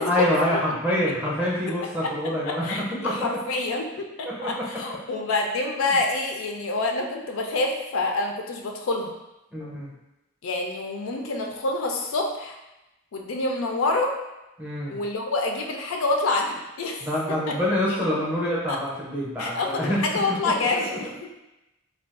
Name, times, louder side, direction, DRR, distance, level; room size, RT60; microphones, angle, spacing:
voice 1, 0.0-3.3 4.2-4.8 9.5-9.9 14.6-15.0 17.0-20.0 20.3-21.0, left 1 dB, 5° right, -5 dB, 0.6 m, -26 dB
voice 2, 2.5-9.1 10.4-12.6 13.1-14.1 14.9-17.4 18.7-18.8 19.4-21.3, left 2 dB, 85° left, 2 dB, 0.4 m, -27 dB
2.4 x 2.3 x 3.6 m, 0.96 s
head